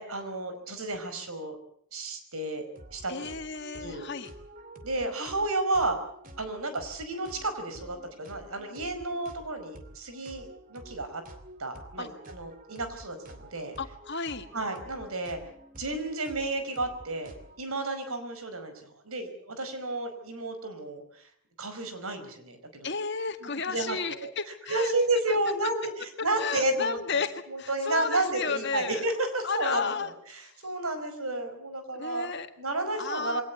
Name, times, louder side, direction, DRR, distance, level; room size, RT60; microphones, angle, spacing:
voice 1, 0.0-1.6 1.9-2.7 2.9-3.3 3.8-4.1 4.8-6.0 6.4-11.2 11.6-13.7 14.5-15.4 15.8-17.3 17.6-21.3 21.6-22.9 23.4-24.3 24.7-32.3 32.6-33.4, right 2 dB, 85° right, 8 dB, 5.0 m, -32 dB
sound 1, 2.7-17.7, right 1 dB, 40° right, 2.7 m, -49 dB
voice 2, 3.1-4.3 12.0-12.1 13.8-14.5 22.8-24.9 26.4-29.0 29.4-30.1 30.4-30.5 31.9-32.5 33.0-33.4, left 4 dB, 50° left, 8 dB, 1.9 m, -33 dB
23.0 x 18.5 x 8.4 m, 0.64 s
head